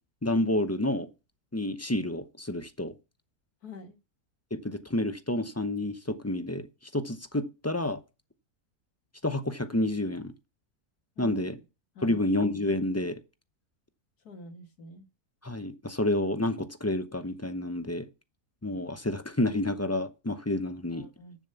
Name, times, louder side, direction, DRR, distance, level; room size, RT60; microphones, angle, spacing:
voice 1, 0.2-1.1 1.5-3.0 4.5-6.7 6.9-8.0 9.2-10.3 11.2-11.6 12.0-13.2 15.4-18.1 18.6-21.1, left 1 dB, 15° left, 0.6 m, -29 dB
voice 2, 3.6-4.0 11.2-11.4 12.0-12.2 14.2-15.1 20.9-21.4, left 2 dB, 80° left, 2.5 m, -46 dB
13.5 x 7.4 x 7.0 m
omnidirectional pair, 1.6 m